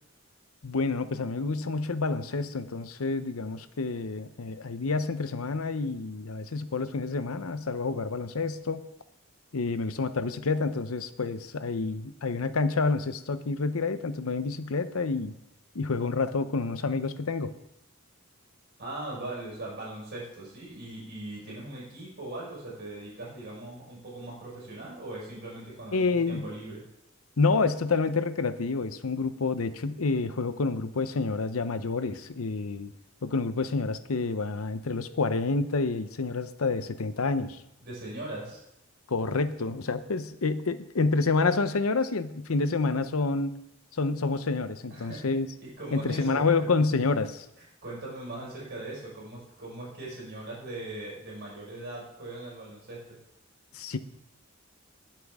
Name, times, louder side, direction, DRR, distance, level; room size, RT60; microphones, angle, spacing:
voice 1, 0.6-8.8 9.5-15.3 15.7-17.5 25.9-26.5 27.4-32.9 33.2-37.6 39.1-43.6 43.9-45.5 45.9-47.5 53.7-54.0, left 3 dB, 90° left, 12 dB, 0.8 m, -28 dB
voice 2, 18.8-26.8 37.8-38.6 44.9-46.7 47.6-53.2, right 2 dB, 50° right, -4 dB, 5.3 m, -40 dB
19.5 x 7.7 x 3.6 m, 0.85 s
head